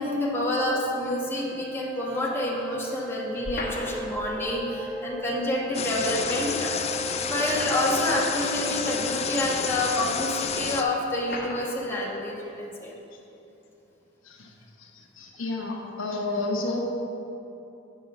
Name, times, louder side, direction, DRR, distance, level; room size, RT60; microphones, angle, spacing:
voice 1, 0.0-6.7 7.2-12.9, left 1 dB, 10° left, -5 dB, 1.3 m, -28 dB
sound 1, 1.0-10.7, right 2 dB, 50° right, 0.6 m, -37 dB
sound 2, 3.4-4.3 6.0-6.1 7.3-8.2 9.1-9.2 10.2-10.3 11.2-11.7, left 2 dB, 50° left, 1.2 m, -36 dB
sound 3, 5.7-10.8, left 6 dB, 30° left, 0.4 m, -30 dB
voice 2, 14.8-16.8, left 2 dB, 70° left, 1 dB, 1.1 m, -31 dB
7.3 x 5.3 x 6.6 m, 2.9 s
head